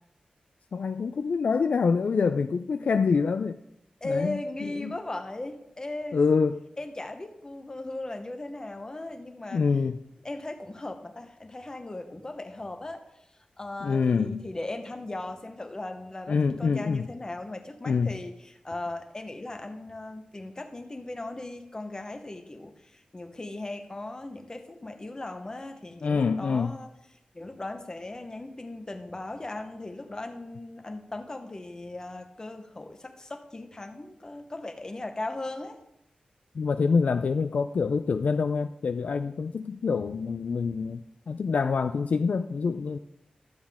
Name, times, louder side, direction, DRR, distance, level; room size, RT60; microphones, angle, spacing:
voice 1, 0.7-3.5 4.0-4.4 4.8-5.0 6.1-6.6 9.5-10.0 13.8-14.5 16.3-17.1 17.9-18.1 26.0-26.7 36.5-43.0, left 5 dB, 65° left, 9 dB, 0.3 m, -26 dB
voice 2, 4.0-6.2 6.8-9.6 10.2-13.0 13.6-26.9 27.3-35.8, left 2 dB, 25° left, 6 dB, 0.9 m, -38 dB
12.0 x 7.2 x 3.5 m, 0.83 s
wide cardioid pair, 125°, 3 cm